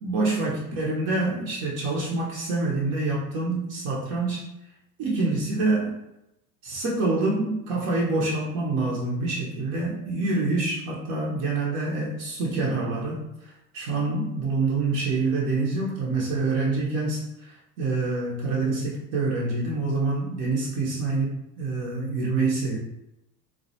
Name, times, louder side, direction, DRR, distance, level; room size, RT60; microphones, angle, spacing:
voice 1, 0.0-4.4 5.0-5.9 6.6-13.2 13.7-21.3 21.6-22.8, right 3 dB, 45° right, -4 dB, 0.7 m, -26 dB
2.2 x 2.0 x 2.8 m, 0.89 s
hypercardioid pair, 85°, 47 cm